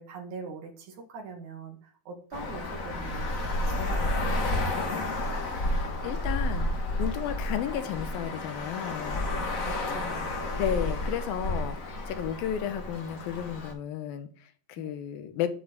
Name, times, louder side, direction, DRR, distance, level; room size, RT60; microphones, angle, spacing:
voice 1, 0.0-5.3 9.6-10.3 14.8-14.9, right 4 dB, 60° right, 4 dB, 3.2 m, -43 dB
Traffic noise roadway noise, 2.3-13.7, left 1 dB, 45° left, 1.0 m, -31 dB
voice 2, 5.7-6.7 7.0-9.3 10.6-15.5, left 10 dB, 85° left, 10 dB, 2.9 m, -33 dB
11.0 x 5.7 x 8.2 m, 0.43 s
omnidirectional pair, 4.0 m